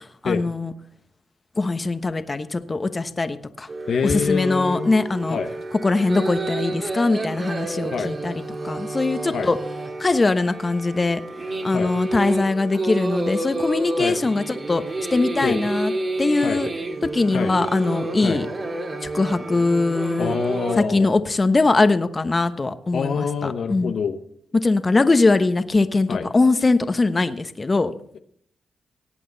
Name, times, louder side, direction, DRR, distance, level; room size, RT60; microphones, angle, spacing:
voice 1, 0.2-0.7 1.6-3.7 4.0-5.4 5.8-9.6 10.0-11.2 11.6-14.8 15.1-15.9 16.2-16.7 17.1-18.5 19.0-20.3 20.8-23.9 24.5-27.9, left 3 dB, 35° left, 10 dB, 1.1 m, -21 dB
sound 1, 3.7-20.8, right 2 dB, 45° right, 2.2 m, -30 dB
voice 2, 3.9-4.9 5.3-5.5 7.9-8.1 9.3-9.5 11.7-11.9 14.0-14.2 15.4-15.6 16.4-16.6 17.3-17.5 18.2-18.4 20.2-21.1 22.9-24.2 26.1-26.3, left 6 dB, 70° left, 7 dB, 0.9 m, -25 dB
18.5 x 8.5 x 4.0 m, 0.64 s
supercardioid pair, 55°, 0 cm